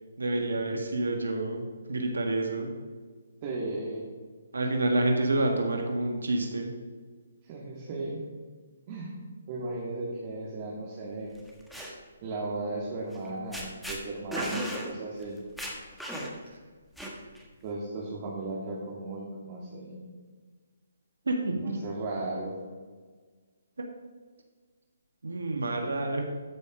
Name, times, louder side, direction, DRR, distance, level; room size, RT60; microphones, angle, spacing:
voice 1, 0.2-2.7 4.5-6.7 14.3-14.6 16.5-16.6 21.2-21.8 23.8-23.9 25.2-26.2, right 2 dB, 80° right, 3 dB, 1.5 m, -28 dB
voice 2, 3.4-4.0 7.4-8.3 8.9-9.1 9.5-11.3 12.2-15.4 17.6-20.1 21.6-22.6, right 2 dB, 35° right, -4 dB, 1.9 m, -36 dB
sound 1, 11.4-11.9 13.1-13.3 13.5-14.0 14.3-14.9 15.2-15.3 15.6-16.5 17.0-17.4, equal, ahead, 1.4 m, -35 dB
13.0 x 5.3 x 5.0 m, 1.5 s
hypercardioid pair, 145°, 0 cm